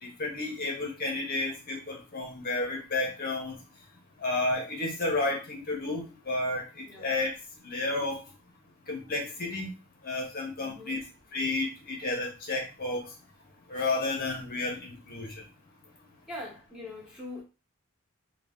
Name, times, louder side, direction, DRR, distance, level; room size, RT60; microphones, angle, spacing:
voice 1, 0.0-3.5 4.2-7.3 7.6-8.2 8.9-9.7 10.0-11.0 11.3-13.0 13.7-15.4, left 2 dB, 45° left, 0 dB, 0.7 m, -31 dB
voice 2, 10.6-11.0 16.3-17.4, left 2 dB, 5° right, -4 dB, 1.1 m, -42 dB
3.2 x 2.2 x 3.6 m, 0.31 s
head